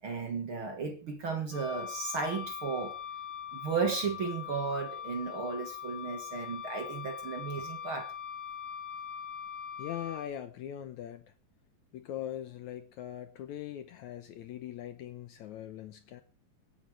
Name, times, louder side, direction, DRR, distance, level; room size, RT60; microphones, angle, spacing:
voice 1, 0.0-3.0 3.5-8.1, right 5 dB, 50° right, 5 dB, 1.8 m, -34 dB
Wind instrument woodwind instrument, 1.5-10.3, left 8 dB, 90° left, 4.7 m, -41 dB
voice 2, 9.8-11.3 11.9-16.2, left 11 dB, 75° left, 10 dB, 1.9 m, -41 dB
25.0 x 9.1 x 3.3 m, 0.32 s
omnidirectional pair, 4.1 m